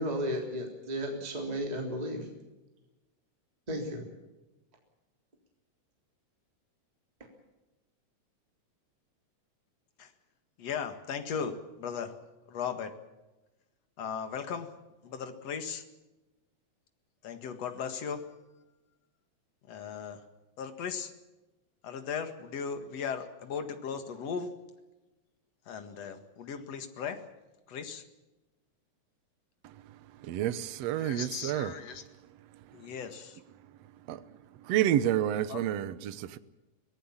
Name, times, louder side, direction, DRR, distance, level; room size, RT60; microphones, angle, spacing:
voice 1, 0.0-2.3 3.7-4.0, equal, 15° right, 1 dB, 3.4 m, -34 dB
voice 2, 10.6-12.1 12.5-13.0 14.0-15.8 17.2-18.3 19.7-20.2 20.6-21.1 21.8-24.5 25.7-27.3 27.7-28.0 31.0-32.0 32.7-33.4 35.5-35.7, left 6 dB, 60° left, 8 dB, 2.8 m, -37 dB
voice 3, 30.2-31.7 34.1-34.2 34.7-36.4, right 11 dB, 65° right, 14 dB, 1.9 m, -29 dB
25.0 x 18.5 x 7.2 m, 1.1 s
omnidirectional pair, 3.5 m